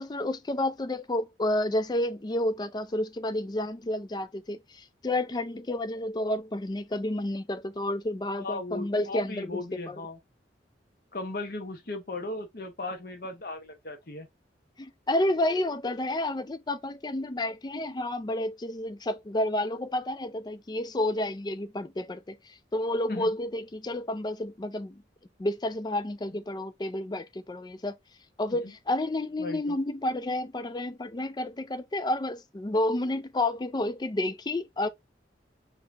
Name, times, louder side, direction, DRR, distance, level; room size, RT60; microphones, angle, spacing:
voice 1, 0.0-9.6 9.9-10.0 14.8-22.4 22.7-25.0 25.4-28.0 28.4-34.9, left 1 dB, 25° left, 0.4 m, -30 dB
voice 2, 8.3-10.2 11.1-14.3 23.1-23.3 28.5-28.7 29.4-29.8, left 2 dB, 55° left, 1.2 m, -37 dB
4.7 x 2.9 x 3.4 m
head